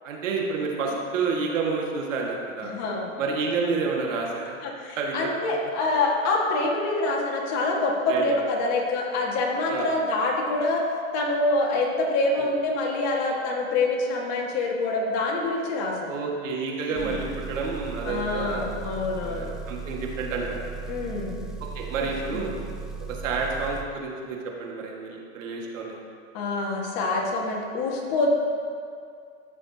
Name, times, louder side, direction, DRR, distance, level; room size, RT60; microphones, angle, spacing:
voice 1, 0.0-2.7 3.2-4.6 5.0-5.3 8.1-8.4 9.7-9.9 12.4-12.5 16.0-20.6 21.6-22.5 23.1-26.0, right 4 dB, 75° right, -1 dB, 1.8 m, -29 dB
voice 2, 2.6-3.1 4.6-10.8 11.1-16.2 16.9-17.1 18.0-19.6 20.9-21.4 22.3-22.4 26.3-28.3, left 2 dB, 45° left, 0 dB, 1.8 m, -26 dB
Engine, 17.0-23.9, right 5 dB, ahead, 0.6 m, -37 dB
13.5 x 6.6 x 2.8 m, 2.3 s
hypercardioid pair, 115°, 39 cm